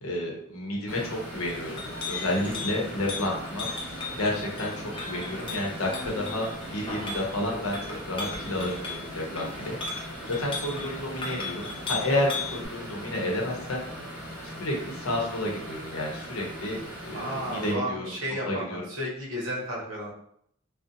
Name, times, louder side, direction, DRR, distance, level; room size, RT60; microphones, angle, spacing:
voice 1, 0.0-1.8 2.1-3.7 4.2-7.8 8.1-9.8 10.3-13.8 14.6-18.1 18.5-18.8, left 1 dB, 85° left, -1 dB, 0.7 m, -30 dB
sound 1, 0.9-17.7, equal, 5° right, 1.0 m, -40 dB
Chink clink, 1.3-12.6, left 3 dB, 25° left, 0.4 m, -37 dB
voice 2, 17.1-20.1, equal, 70° right, -3 dB, 0.7 m, -33 dB
2.5 x 2.0 x 2.6 m, 0.68 s
head